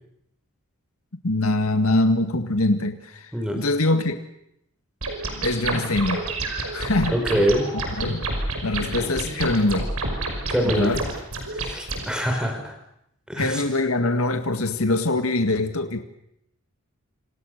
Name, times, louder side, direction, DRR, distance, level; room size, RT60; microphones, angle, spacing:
voice 1, 1.2-3.3 3.6-4.2 5.4-6.2 6.7-7.2 7.7-8.3 8.6-9.9 10.6-11.0 13.4-16.0, left 2 dB, 75° left, 7 dB, 2.0 m, -23 dB
sound 1, 5.0-12.1, right 2 dB, 80° right, 5.8 m, -29 dB
voice 2, 7.1-7.7 10.5-10.9 11.5-12.7 13.3-13.6, equal, 5° right, 4 dB, 5.1 m, -24 dB
27.5 x 27.5 x 6.7 m, 0.77 s
head